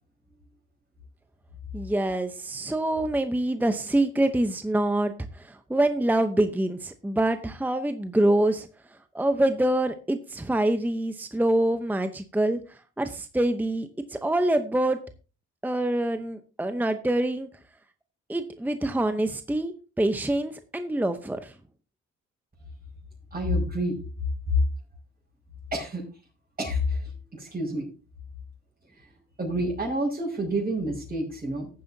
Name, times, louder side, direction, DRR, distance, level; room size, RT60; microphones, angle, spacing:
voice 1, 1.7-8.7 9.1-12.6 13.0-15.0 15.6-17.5 18.3-21.5, right 1 dB, 5° right, 9 dB, 0.8 m, -25 dB
voice 2, 23.3-24.0 24.5-24.6 25.7-26.1 26.6-27.9 28.9-29.1 29.4-31.7, equal, 30° right, -5 dB, 5.5 m, -28 dB
15.0 x 9.2 x 2.8 m, 0.34 s
cardioid pair, 90°, 30 cm